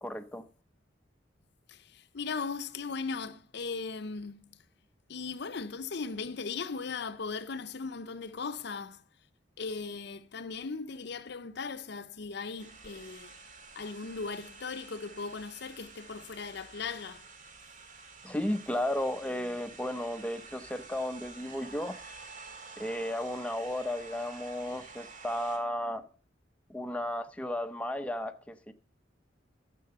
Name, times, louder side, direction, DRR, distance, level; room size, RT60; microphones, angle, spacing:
voice 1, 0.0-0.4 18.2-22.0 22.8-26.0 26.7-28.7, left 1 dB, 5° left, 0.7 m, -34 dB
voice 2, 1.7-4.6 5.1-9.0 9.6-13.4 13.8-17.3, left 4 dB, 65° left, 0.7 m, -38 dB
sound 1, 12.6-25.6, right 4 dB, 45° right, 2.2 m, -50 dB
12.5 x 7.6 x 6.7 m
head